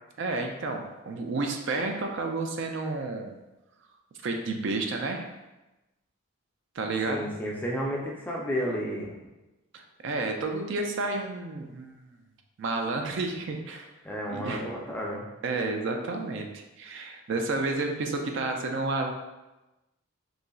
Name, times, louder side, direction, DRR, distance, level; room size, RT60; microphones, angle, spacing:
voice 1, 0.2-3.4 4.2-5.3 6.7-7.3 9.7-12.1 12.6-13.9 14.3-14.7 15.4-19.1, right 3 dB, 60° right, 3 dB, 0.4 m, -31 dB
voice 2, 7.1-9.1 14.0-15.3, equal, 10° left, -3 dB, 0.4 m, -32 dB
3.9 x 2.9 x 2.3 m, 1.0 s
head